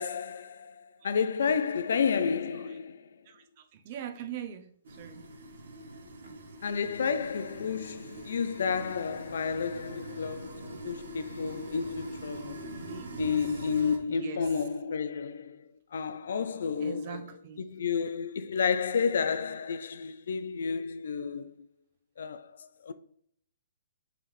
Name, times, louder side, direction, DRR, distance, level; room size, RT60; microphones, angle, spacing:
voice 1, 0.0-3.1 6.6-12.8 13.2-15.6 15.9-17.3 17.6-21.5 22.2-22.5 22.8-22.9, left 6 dB, 70° left, 0.3 m, -31 dB
voice 2, 3.3-4.7 5.0-5.3 12.8-13.3 14.1-14.5 16.8-17.6, right 9 dB, 45° right, 0.5 m, -42 dB
sound 1, 4.8-14.0, right 1 dB, 70° right, 0.8 m, -43 dB
3.6 x 3.3 x 3.1 m
hypercardioid pair, 135°, 0 cm